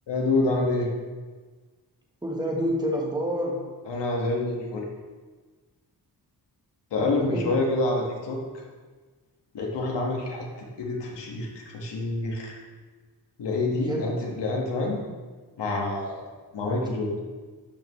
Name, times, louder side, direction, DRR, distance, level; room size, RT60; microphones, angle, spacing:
voice 1, 0.1-0.9 3.9-4.9 6.9-8.4 9.5-10.5 10.8-12.6 13.4-15.0 15.6-16.2 16.5-17.1, left 2 dB, 85° left, -1 dB, 1.7 m, -27 dB
voice 2, 2.2-3.6 7.0-7.5 13.7-14.1, equal, 10° right, -1 dB, 1.2 m, -28 dB
12.0 x 5.6 x 3.2 m, 1.4 s
wide cardioid pair, 155°, 41 cm